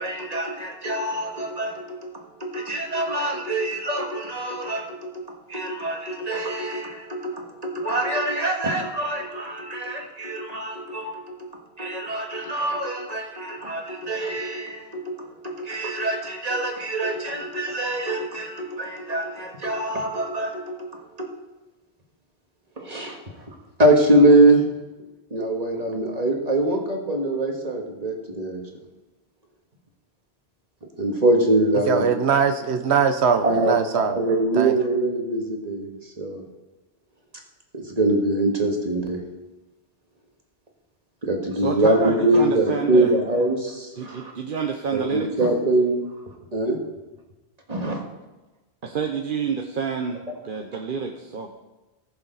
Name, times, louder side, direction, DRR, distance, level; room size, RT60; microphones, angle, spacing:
voice 1, 0.0-2.1 2.4-11.5 11.8-15.2 15.4-20.9 22.8-24.6 25.3-28.6 31.0-32.0 33.4-36.4 37.7-39.2 41.2-44.3 44.9-46.0 46.5-46.8 47.7-48.0, right 1 dB, 40° right, 1 dB, 1.9 m, -24 dB
voice 2, 31.9-34.2 34.6-34.7, right 6 dB, 90° right, 8 dB, 1.1 m, -21 dB
voice 3, 41.5-43.1 44.0-45.3 48.8-51.5, right 6 dB, 55° right, 3 dB, 1.0 m, -28 dB
19.5 x 6.8 x 4.0 m, 1.1 s
omnidirectional pair, 1.1 m